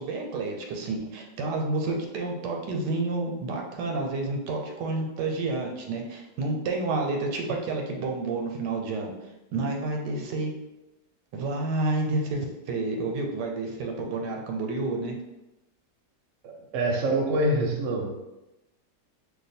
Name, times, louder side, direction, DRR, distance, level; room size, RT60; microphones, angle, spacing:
voice 1, 0.0-9.1 9.5-10.5 11.3-15.1, right 3 dB, 85° right, 1 dB, 1.2 m, -29 dB
voice 2, 16.4-18.2, right 1 dB, 65° right, 0 dB, 0.8 m, -26 dB
2.7 x 2.2 x 4.1 m, 0.97 s
omnidirectional pair, 1.8 m